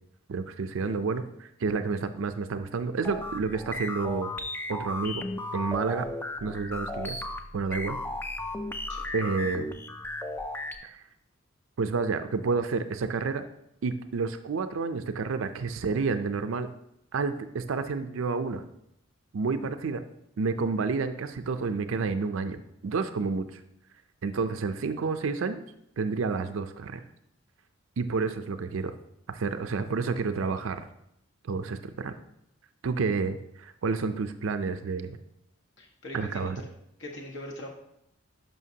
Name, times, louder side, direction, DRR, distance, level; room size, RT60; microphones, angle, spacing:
voice 1, 0.3-4.3 4.7-5.2 5.5-6.1 6.4-7.2 7.5-8.0 9.1-9.7 10.8-11.0 11.8-13.4 13.8-16.7 17.1-18.6 19.3-20.0 20.4-23.6 24.2-25.6 26.0-27.0 28.0-28.9 29.3-30.8 31.4-32.2 32.8-35.2 36.1-36.6, right 4 dB, 75° right, 10 dB, 0.4 m, -30 dB
sound 1, 3.0-10.7, left 1 dB, 10° left, 0.3 m, -35 dB
voice 2, 35.8-36.5 37.0-37.7, left 1 dB, 60° left, 0 dB, 1.5 m, -41 dB
11.0 x 5.6 x 2.8 m, 0.78 s
head